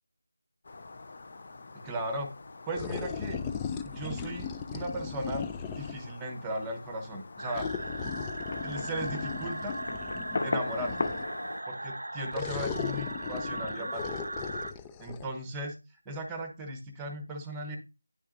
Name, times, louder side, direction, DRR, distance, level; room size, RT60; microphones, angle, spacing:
Fireworks, 0.6-11.6, left 3 dB, 40° left, 0.7 m, -40 dB
voice 1, 1.8-2.3 2.7-3.4 3.8-5.4 5.7-8.0 8.6-9.8 10.4-11.0 11.7-14.1 15.0-15.8 16.0-17.8, right 1 dB, 10° right, 4 dB, 1.0 m, -36 dB
sound 1, 2.7-6.1 7.5-11.4 12.3-15.2, left 6 dB, 10° left, 0.3 m, -37 dB
sound 2, 7.4-14.7, right 1 dB, 75° right, 0.7 m, -38 dB
9.5 x 6.0 x 2.5 m, 0.29 s
figure-of-eight pair, 165°, 0 cm